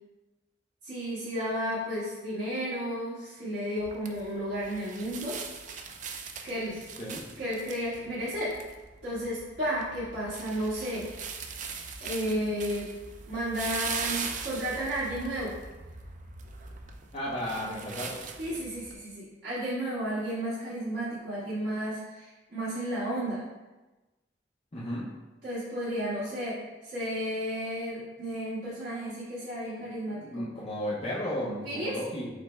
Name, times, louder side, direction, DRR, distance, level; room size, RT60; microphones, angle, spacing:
voice 1, 0.8-5.4 6.4-6.8 7.4-8.5 9.0-11.1 12.0-12.9 13.3-15.5 18.4-23.4 25.4-30.4 31.6-32.0, equal, 75° right, -12 dB, 1.4 m, -33 dB
sound 1, 3.8-18.9, right 5 dB, 45° right, 0.4 m, -40 dB
voice 2, 17.1-18.2 24.7-25.1 29.8-29.9 30.2-32.3, equal, 35° left, -7 dB, 0.7 m, -34 dB
5.0 x 2.2 x 4.4 m, 1.1 s
head